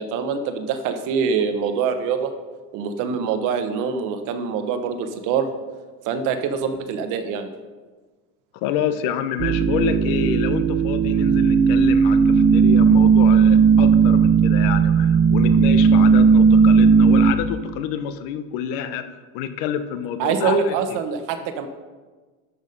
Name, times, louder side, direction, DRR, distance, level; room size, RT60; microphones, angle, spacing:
voice 1, 0.0-2.3 2.7-5.5 6.0-7.5 20.2-21.7, right 6 dB, 60° right, 8 dB, 1.1 m, -24 dB
voice 2, 8.5-21.0, left 9 dB, 65° left, 11 dB, 0.9 m, -28 dB
sound 1, 9.4-17.3, right 6 dB, 25° right, 0.4 m, -15 dB
12.0 x 6.1 x 5.3 m, 1.3 s
cardioid pair, 170°, 36 cm